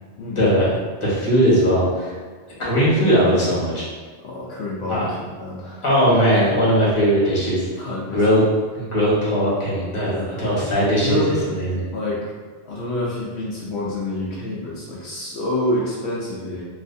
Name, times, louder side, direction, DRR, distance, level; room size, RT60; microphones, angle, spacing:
voice 1, 0.3-2.1 2.6-3.9 4.9-5.1 5.8-7.7 8.1-8.4 8.7-11.8, equal, 30° left, -7 dB, 1.1 m, -19 dB
voice 2, 4.2-5.8 7.8-8.2 10.0-10.7 11.0-11.4 11.9-12.3 12.6-16.6, left 1 dB, 75° left, -5 dB, 0.9 m, -28 dB
3.2 x 2.9 x 2.6 m, 1.5 s
omnidirectional pair, 1.2 m